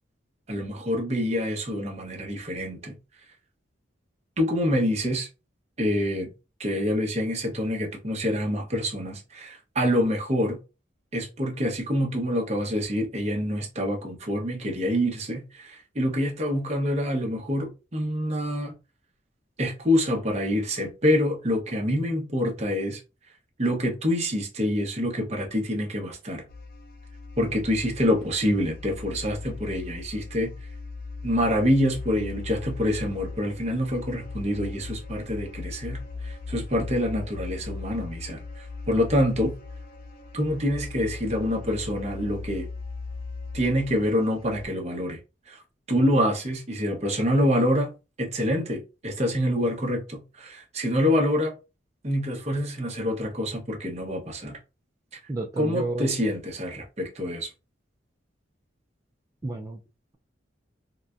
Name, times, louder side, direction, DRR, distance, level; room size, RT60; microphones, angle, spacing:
voice 1, 0.5-2.9 4.4-5.3 5.8-6.3 6.6-10.6 11.1-18.7 19.6-23.0 23.6-26.4 27.4-30.5 31.2-39.5 40.3-42.7 43.5-45.2 45.5-45.6 45.9-47.9 48.2-51.5 52.0-54.6 55.1-55.2 55.6-57.5, equal, 35° right, 0.8 m, -26 dB
sound 1, 26.5-44.7, left 3 dB, 50° left, 0.7 m, -38 dB
voice 2, 55.3-56.1 59.4-59.8, right 2 dB, 20° right, 0.3 m, -31 dB
3.9 x 2.1 x 2.4 m
head